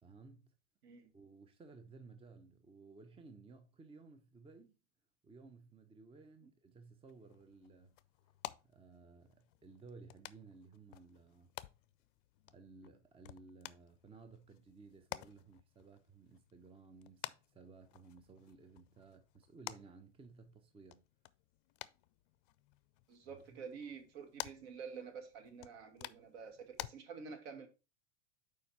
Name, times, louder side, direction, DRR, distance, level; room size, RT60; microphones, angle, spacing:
voice 1, 0.0-0.5 1.1-4.8 5.2-8.0 8.6-11.5 12.5-21.0 23.3-23.6, right 4 dB, 15° right, 0.8 m, -57 dB
sound 1, 7.1-26.9, left 16 dB, 50° left, 0.5 m, -53 dB
voice 2, 23.1-27.7, right 6 dB, 60° right, 2.0 m, -49 dB
6.8 x 4.8 x 4.1 m
hypercardioid pair, 95°, 35 cm